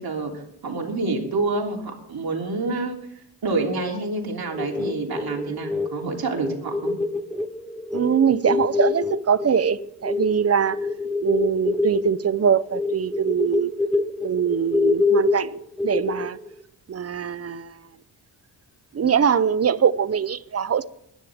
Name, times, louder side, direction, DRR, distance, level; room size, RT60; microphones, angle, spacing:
voice 1, 0.0-3.0 3.4-6.9, right 3 dB, 60° right, 3.3 m, -27 dB
sound 1, 4.5-10.3 10.6-16.5, left 3 dB, ahead, 0.9 m, -25 dB
voice 2, 7.9-10.8 11.2-13.7 14.2-16.4 16.9-17.9 18.9-20.8, right 7 dB, 35° right, 0.7 m, -22 dB
22.0 x 10.0 x 3.6 m
cardioid pair, 80°, 42 cm